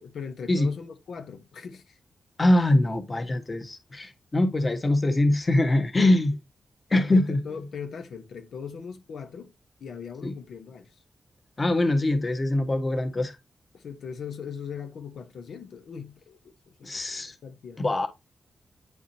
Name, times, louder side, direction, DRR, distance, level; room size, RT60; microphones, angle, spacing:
voice 1, 0.0-2.0 6.9-9.5 9.8-11.0 13.7-16.4 16.7-17.8, left 6 dB, 80° left, 1.0 m, -40 dB
voice 2, 2.4-6.3 6.9-7.4 10.2-10.3 11.6-13.4 16.8-17.3 17.8-18.1, left 1 dB, 30° left, 1.3 m, -23 dB
8.8 x 4.9 x 2.7 m
wide cardioid pair, 110°, 0 cm